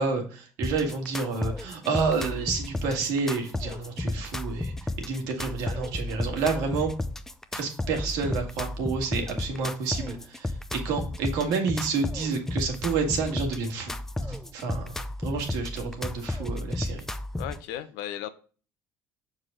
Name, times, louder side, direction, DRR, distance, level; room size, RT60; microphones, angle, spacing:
voice 1, 0.0-6.9 7.5-13.9 14.3-17.0, right 4 dB, 80° right, 3 dB, 1.8 m, -29 dB
sound 1, 0.6-17.6, left 2 dB, 5° left, 0.4 m, -33 dB
voice 2, 17.4-18.3, left 11 dB, 90° left, 12 dB, 0.7 m, -35 dB
6.6 x 4.7 x 3.8 m, 0.39 s
cardioid pair, 135°, 6 cm